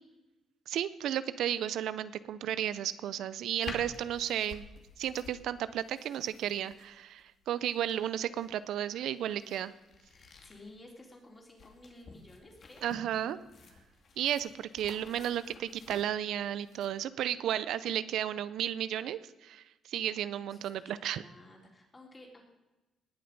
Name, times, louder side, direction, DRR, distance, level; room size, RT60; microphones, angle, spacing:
voice 1, 0.7-4.6 5.0-9.7 12.8-13.4 14.2-21.2, right 11 dB, 80° right, 15 dB, 0.5 m, -33 dB
sound 1, 3.6-16.9, left 4 dB, 55° left, 2.3 m, -51 dB
voice 2, 10.1-12.9 20.5-22.4, left 2 dB, 25° left, 0 dB, 3.9 m, -54 dB
19.5 x 7.7 x 5.4 m, 1.1 s
cardioid pair, 90°, 0 cm